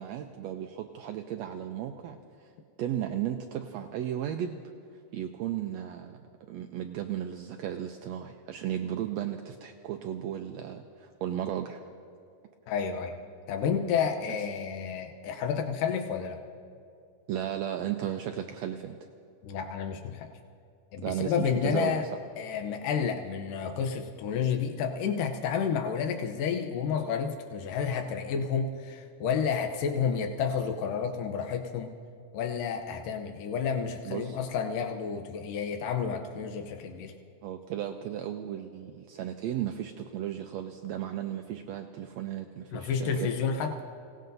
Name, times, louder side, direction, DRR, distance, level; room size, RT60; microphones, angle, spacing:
voice 1, 0.0-2.5 2.8-4.6 5.1-11.8 17.3-19.0 21.0-22.0 34.0-34.4 37.4-43.3, right 10 dB, 85° right, 5 dB, 1.5 m, -35 dB
voice 2, 12.7-13.2 13.5-16.4 19.4-20.3 20.9-22.1 22.4-31.9 32.3-37.1 42.7-43.8, left 6 dB, 90° left, 4 dB, 2.5 m, -30 dB
29.5 x 18.0 x 2.7 m, 2.5 s
omnidirectional pair, 3.7 m